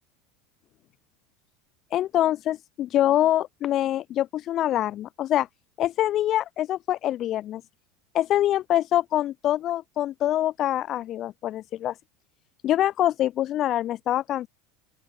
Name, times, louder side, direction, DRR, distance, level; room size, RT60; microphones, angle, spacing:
voice 1, 1.9-5.5 5.8-7.6 8.1-12.0 12.6-14.5, left 12 dB, 45° left, 0.6 m, -25 dB
open air
hypercardioid pair, 90°, 0 cm